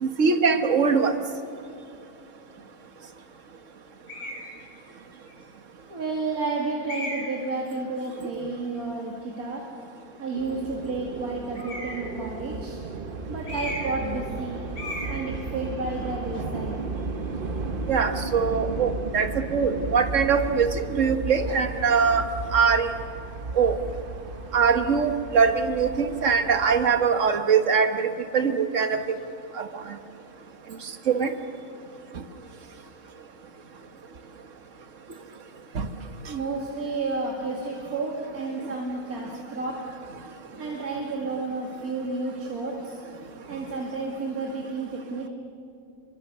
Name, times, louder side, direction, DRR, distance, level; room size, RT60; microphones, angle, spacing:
voice 1, 0.0-1.1 17.9-22.3 22.5-22.9 23.5-23.8 24.5-29.0 29.6-30.0 31.1-31.3 35.7-35.9, right 6 dB, 60° right, 7 dB, 1.7 m, -22 dB
sound 1, 4.1-4.5 5.3-5.4 6.9-7.4 11.5-12.1 13.4-14.0 14.3-14.5 14.7-15.2, left 1 dB, 85° left, 7.8 m, -35 dB
voice 2, 5.9-9.6 10.2-12.8 13.3-14.8 15.0-16.8 32.7-32.9 36.3-39.8 40.6-43.0 43.5-45.3, right 3 dB, 80° right, -2 dB, 3.0 m, -31 dB
sound 2, 10.3-26.9, right 3 dB, 40° right, 1.3 m, -34 dB
28.0 x 23.5 x 6.8 m, 2.5 s
omnidirectional pair, 1.5 m